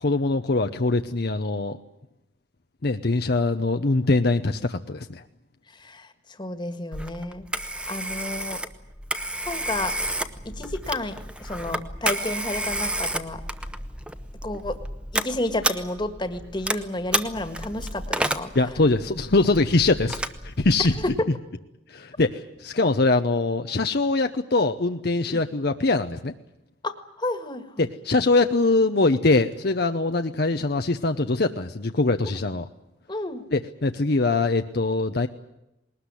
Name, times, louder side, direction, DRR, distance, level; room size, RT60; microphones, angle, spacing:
voice 1, 0.0-1.8 2.8-5.2 18.5-20.2 20.4-20.9 21.9-26.3 27.8-32.7 33.5-35.3, left 3 dB, 55° left, 7 dB, 0.8 m, -22 dB
voice 2, 5.7-7.5 7.9-8.6 9.5-10.0 10.4-13.4 14.4-14.8 15.1-18.7 21.0-21.3 25.3-25.4 26.8-27.9 33.1-33.4, left 1 dB, 25° left, 9 dB, 1.7 m, -31 dB
Telephone, 6.9-21.2, right 1 dB, 5° right, 1.0 m, -31 dB
21.0 x 19.5 x 9.9 m, 0.89 s
head